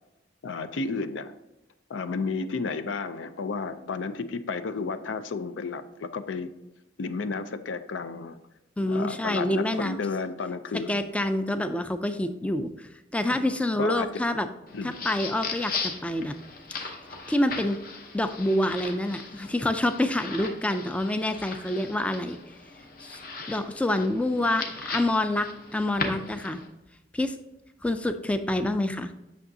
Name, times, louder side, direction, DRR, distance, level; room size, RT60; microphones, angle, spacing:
voice 1, 0.4-1.3 1.9-6.5 7.0-8.4 8.9-11.1 13.3-14.1 14.7-15.0, left 4 dB, 85° left, 12 dB, 0.5 m, -32 dB
voice 2, 8.8-10.0 10.9-14.5 14.8-16.3 16.7-16.9 17.3-17.8 18.1-22.4 23.0-23.2 23.5-25.5 25.7-26.6 27.1-27.4 27.8-29.1, left 1 dB, 5° left, 9 dB, 0.3 m, -27 dB
sound 1, 14.7-26.7, left 4 dB, 50° left, 0.9 m, -38 dB
8.4 x 6.3 x 2.7 m, 0.96 s
head